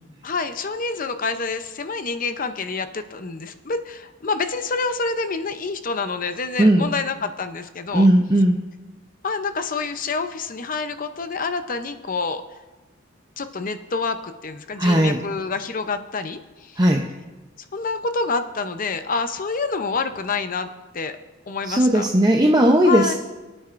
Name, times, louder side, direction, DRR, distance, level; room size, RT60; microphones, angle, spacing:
voice 1, 0.2-8.1 9.2-12.4 13.4-16.8 17.7-21.2 21.5-22.0 22.8-23.1, left 4 dB, 45° left, 9 dB, 0.7 m, -27 dB
voice 2, 6.6-6.9 7.9-8.6 14.8-15.2 16.8-17.0 21.7-23.1, right 1 dB, 20° right, 1 dB, 0.6 m, -17 dB
24.0 x 8.9 x 2.6 m, 1.2 s
head